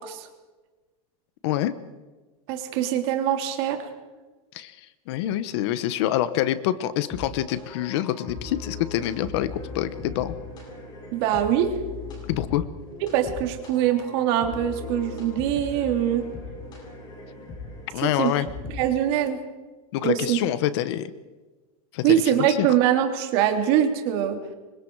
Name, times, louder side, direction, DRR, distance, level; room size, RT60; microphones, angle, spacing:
voice 1, 2.5-3.8 11.1-11.7 13.1-16.2 18.0-18.3 18.7-19.4 20.0-20.4 22.0-24.4, right 10 dB, 40° right, 4 dB, 3.2 m, -23 dB
voice 2, 5.1-10.3 12.3-12.6 17.9-18.5 19.9-21.1 21.9-22.2 22.6-22.7, left 13 dB, 45° left, 14 dB, 1.1 m, -26 dB
sound 1, 6.9-19.1, left 3 dB, 20° left, 7.5 m, -39 dB
28.5 x 25.0 x 4.8 m, 1.2 s
supercardioid pair, 175°, 19 cm